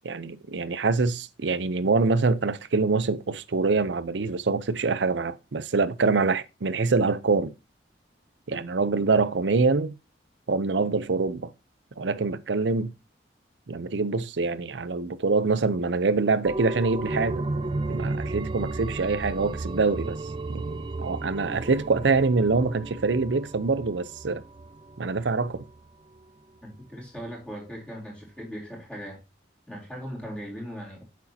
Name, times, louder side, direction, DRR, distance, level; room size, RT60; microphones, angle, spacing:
voice 1, 0.0-7.5 8.5-9.9 10.5-11.5 12.0-12.9 13.7-17.4 17.9-20.2 20.5-20.6 21.0-24.4 25.0-25.6, right 4 dB, 90° right, 0.6 m, -25 dB
sound 1, 16.4-25.8 26.2-26.3, right 2 dB, 25° right, 0.4 m, -34 dB
voice 2, 26.6-29.2 29.7-31.0, equal, 5° left, 3.4 m, -39 dB
8.0 x 6.4 x 2.8 m
head